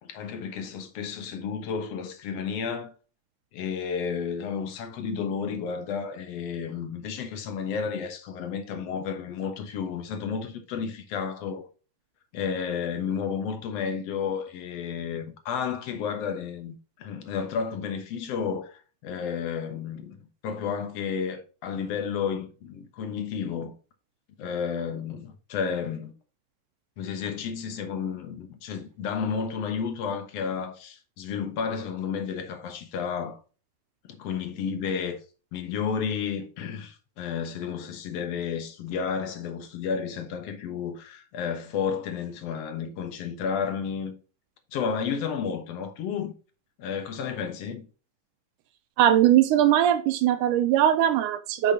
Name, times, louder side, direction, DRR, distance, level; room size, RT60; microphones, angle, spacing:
voice 1, 0.0-2.9 3.5-11.7 12.3-23.7 24.4-26.1 27.0-33.4 34.0-35.2 35.5-44.1 44.7-46.3 46.8-47.9, left 6 dB, 60° left, 1.9 m, -32 dB
voice 2, 49.0-51.7, right 11 dB, 80° right, 2.0 m, -20 dB
9.1 x 5.5 x 2.8 m
omnidirectional pair, 3.9 m